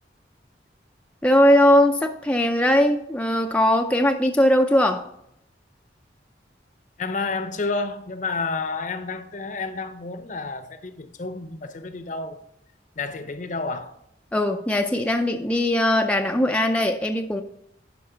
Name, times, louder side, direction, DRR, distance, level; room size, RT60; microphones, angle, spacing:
voice 1, 1.2-5.1 14.3-17.4, left 1 dB, 5° left, 0.4 m, -20 dB
voice 2, 7.0-12.4 13.0-14.0, left 3 dB, 45° left, 0.7 m, -30 dB
11.0 x 5.1 x 3.9 m
head